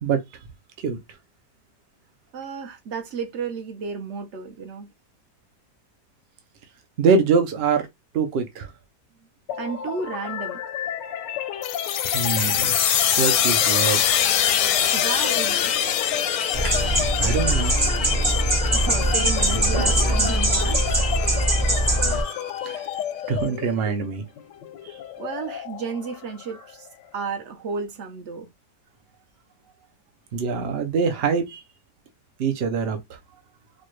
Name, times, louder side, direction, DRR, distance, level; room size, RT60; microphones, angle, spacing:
voice 1, 2.3-4.9 9.6-10.6 14.9-15.7 18.7-21.1 25.2-26.9 27.1-28.5, right 5 dB, 55° right, 0.9 m, -32 dB
voice 2, 7.0-7.9 8.1-8.7 12.1-14.0 17.2-17.7 22.2-22.4 22.6-22.8 23.3-24.2 30.3-31.6 32.4-33.0, right 5 dB, 75° right, 0.5 m, -24 dB
sound 1, 9.5-27.2, left 10 dB, 90° left, 1.3 m, -33 dB
sound 2, 11.6-23.0, left 9 dB, 70° left, 0.9 m, -25 dB
sound 3, 16.5-22.2, right 1 dB, 20° right, 0.6 m, -22 dB
4.1 x 2.3 x 3.1 m
omnidirectional pair, 1.9 m